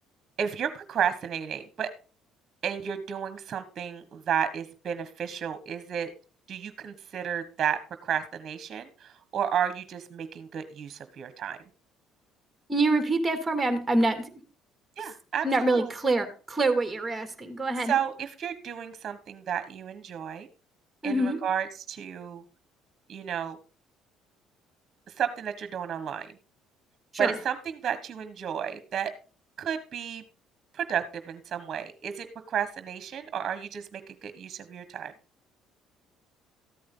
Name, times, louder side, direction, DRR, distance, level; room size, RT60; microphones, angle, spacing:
voice 1, 0.4-1.9 2.6-6.1 6.5-11.6 15.0-15.9 17.9-20.5 21.0-22.4 23.1-23.6 25.1-26.3 27.2-29.1 29.6-30.2 30.7-35.1, right 8 dB, 50° right, 11 dB, 1.4 m, -32 dB
voice 2, 12.7-14.4 15.4-18.0 21.0-21.4 27.1-27.3, right 2 dB, 15° right, 7 dB, 2.5 m, -26 dB
14.0 x 8.6 x 3.9 m, 0.35 s
supercardioid pair, 70°, 0 cm